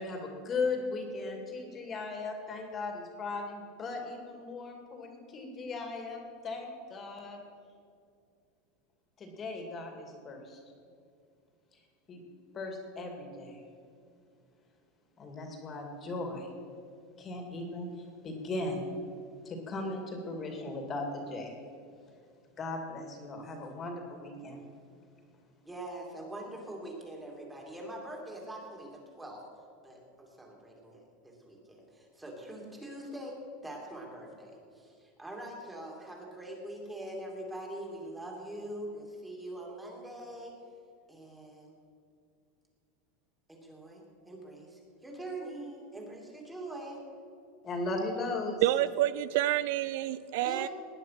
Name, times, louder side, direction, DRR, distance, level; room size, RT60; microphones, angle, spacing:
voice 1, 0.0-7.4 9.2-10.6 12.1-12.2 12.5-13.6 15.2-16.5 17.2-17.9 18.2-18.9 19.4-21.5 22.6-24.6 47.6-48.6, left 3 dB, 25° left, 3 dB, 2.4 m, -37 dB
voice 2, 25.6-29.4 29.8-33.4 33.6-40.5 41.1-41.7 43.5-47.0 50.4-50.7, right 1 dB, 5° right, -1 dB, 2.9 m, -43 dB
voice 3, 48.6-50.7, right 14 dB, 65° right, 16 dB, 0.4 m, -28 dB
19.0 x 10.0 x 6.0 m, 2.3 s
supercardioid pair, 160°, 0 cm